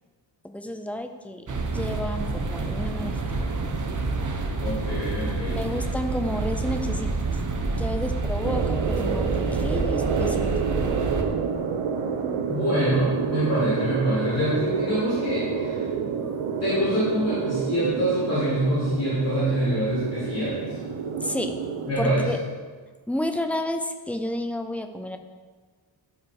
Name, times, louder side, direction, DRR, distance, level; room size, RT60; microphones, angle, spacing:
voice 1, 0.4-3.2 5.5-7.1 7.8-10.5 16.2-16.3 21.2-21.6 22.0-22.4 23.1-25.2, left 1 dB, 5° left, 6 dB, 0.5 m, -31 dB
sound 1, 1.5-11.2, right 3 dB, 40° right, 1.0 m, -28 dB
voice 2, 4.6-6.0 12.5-15.8 16.6-20.6 21.9-22.2, equal, 30° left, -12 dB, 3.5 m, -25 dB
sound 2, 8.4-21.9, right 6 dB, 90° right, 1.0 m, -29 dB
13.5 x 5.8 x 4.7 m, 1.4 s
wide cardioid pair, 175°, 47 cm